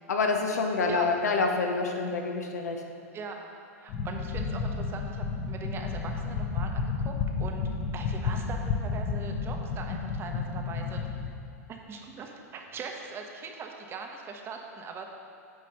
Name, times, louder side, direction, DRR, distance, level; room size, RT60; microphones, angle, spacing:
voice 1, 0.1-2.8, left 4 dB, 75° left, 3 dB, 0.9 m, -27 dB
voice 2, 3.8-7.1 7.4-11.1 11.7-15.0, right 5 dB, 30° right, 3 dB, 0.8 m, -41 dB
sound 1, 3.9-11.3, left 5 dB, 40° left, 0.9 m, -32 dB
9.4 x 3.2 x 5.7 m, 2.6 s
hypercardioid pair, 105°, 9 cm